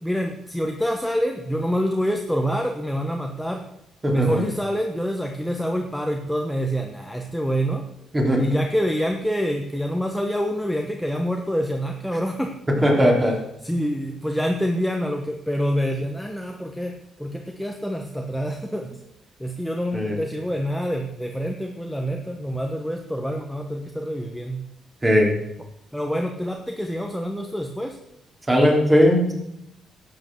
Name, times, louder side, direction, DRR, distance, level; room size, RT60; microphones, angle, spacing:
voice 1, 0.0-3.6 4.1-7.9 8.4-13.1 13.6-19.0 19.4-24.6 25.9-28.0, equal, ahead, 2 dB, 1.1 m, -26 dB
voice 2, 4.0-4.4 8.1-8.4 12.7-13.3 19.9-20.2 25.0-25.4 28.5-29.3, equal, 20° right, 0 dB, 3.6 m, -18 dB
12.0 x 8.1 x 6.3 m, 0.83 s
cardioid pair, 90°, 0 cm